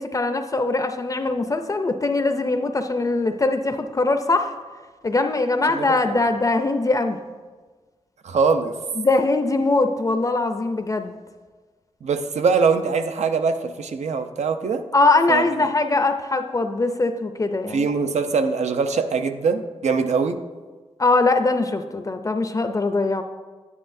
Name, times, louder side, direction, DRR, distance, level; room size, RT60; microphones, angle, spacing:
voice 1, 0.0-4.5 5.0-7.2 9.0-11.1 14.9-17.9 21.0-23.2, left 3 dB, 30° left, 7 dB, 0.4 m, -21 dB
voice 2, 5.7-6.2 8.2-8.7 12.0-14.8 15.3-15.4 17.7-20.4, right 5 dB, 90° right, 8 dB, 0.6 m, -22 dB
10.0 x 9.6 x 2.6 m, 1.4 s
wide cardioid pair, 135°, 11 cm